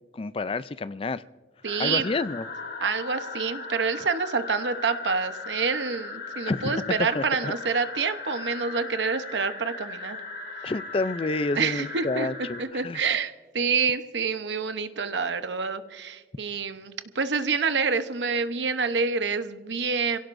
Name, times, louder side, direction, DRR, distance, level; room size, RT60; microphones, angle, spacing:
voice 1, 0.1-1.2 1.8-2.4 6.5-6.8 7.1-7.5 10.6-13.0, left 3 dB, 30° left, 15 dB, 0.4 m, -29 dB
sound 1, 1.6-12.6, left 4 dB, 70° left, 2.6 m, -38 dB
voice 2, 1.6-2.1 2.8-10.2 11.5-12.3 12.6-20.2, right 5 dB, 90° right, 10 dB, 0.9 m, -27 dB
28.0 x 16.5 x 2.6 m, 1.4 s
head